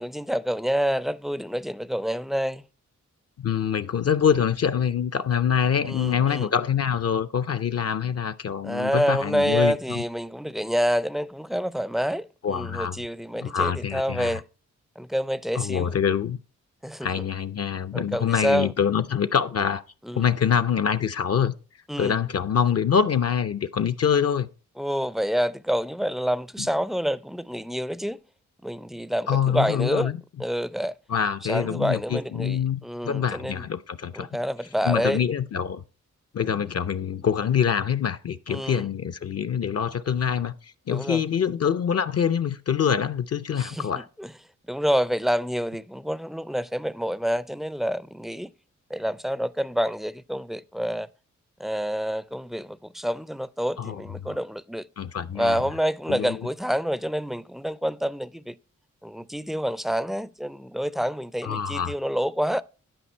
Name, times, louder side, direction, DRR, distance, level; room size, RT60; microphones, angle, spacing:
voice 1, 0.0-2.6 5.8-6.5 8.6-14.4 15.0-15.9 16.8-17.1 17.9-18.7 20.0-20.2 21.9-22.2 24.8-28.2 28.6-30.1 30.4-30.9 31.4-33.6 34.1-35.2 38.5-38.9 40.9-41.2 43.5-44.3 44.7-48.5 48.9-51.1 51.6-54.9 55.3-58.6 59.0-62.6, equal, ahead, 0.4 m, -27 dB
voice 2, 3.4-10.0 12.4-13.0 13.4-14.4 15.5-16.4 17.0-19.8 20.1-21.5 22.0-24.5 29.3-30.1 31.1-34.3 34.8-35.8 36.3-44.1 53.8-54.4 55.0-55.6 56.1-56.4 61.4-61.9, left 7 dB, 50° left, 0.5 m, -25 dB
11.5 x 5.2 x 4.3 m
cardioid pair, 75°, 31 cm